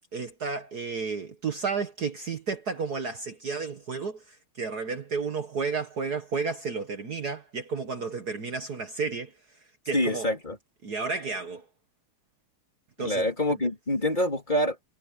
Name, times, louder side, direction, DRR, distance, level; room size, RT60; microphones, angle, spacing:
voice 1, 0.1-9.3 9.9-10.3 10.8-11.7 13.0-13.3, right 5 dB, 50° right, 1.8 m, -32 dB
voice 2, 9.9-10.6 13.0-14.8, left 1 dB, 20° left, 3.8 m, -26 dB
omnidirectional pair, 2.3 m